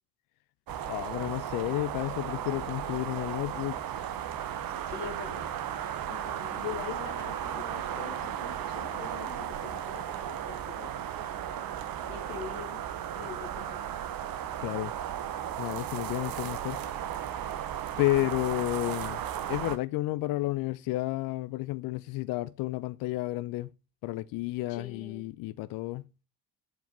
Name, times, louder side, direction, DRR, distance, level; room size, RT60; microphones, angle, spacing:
sound 1, 0.7-19.8, right 10 dB, 45° right, 1.0 m, -35 dB
voice 1, 0.9-3.8 14.6-14.9 15.6-16.8 18.0-19.2 19.5-23.7 24.0-26.0, left 18 dB, 45° left, 0.5 m, -31 dB
voice 2, 4.8-5.5 6.1-10.9 12.1-12.8 13.2-13.8 24.7-25.2, left 9 dB, 75° left, 1.6 m, -43 dB
8.0 x 4.6 x 4.3 m
hypercardioid pair, 60°, 50 cm